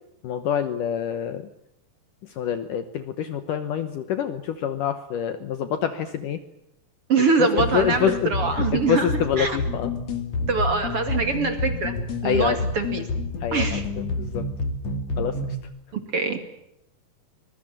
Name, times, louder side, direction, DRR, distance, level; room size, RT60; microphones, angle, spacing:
voice 1, 0.2-1.4 2.4-6.4 7.4-9.9 12.2-12.6 13.4-13.8 14.1-14.4 15.2-15.6, left 9 dB, 70° left, 11 dB, 2.2 m, -26 dB
voice 2, 7.1-9.1 9.4-9.6 10.5-11.9 12.2-13.1 13.5-13.8 16.1-16.4, right 4 dB, 40° right, 8 dB, 2.6 m, -23 dB
sound 1, 7.6-15.6, left 3 dB, 45° left, 3.4 m, -29 dB
24.5 x 21.5 x 8.9 m, 0.81 s
omnidirectional pair, 4.8 m